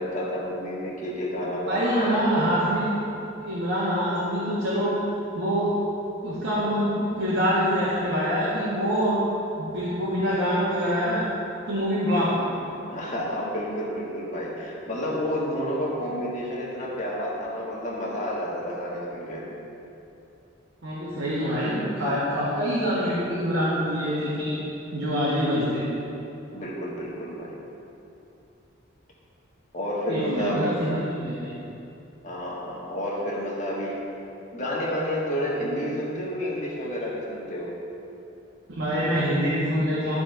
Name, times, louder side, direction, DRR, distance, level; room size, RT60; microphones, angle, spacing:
voice 1, 0.0-2.2 12.9-19.4 26.5-27.6 29.7-31.0 32.2-34.0 34.5-37.7, equal, 35° left, -5 dB, 1.5 m, -30 dB
voice 2, 1.7-3.1 3.4-5.0 5.3-5.7 6.2-9.2 9.5-11.2 11.7-12.4 20.8-24.6 24.9-25.9 30.1-31.5 38.7-40.2, equal, 85° right, -9 dB, 1.7 m, -25 dB
12.5 x 4.4 x 4.5 m, 2.8 s
head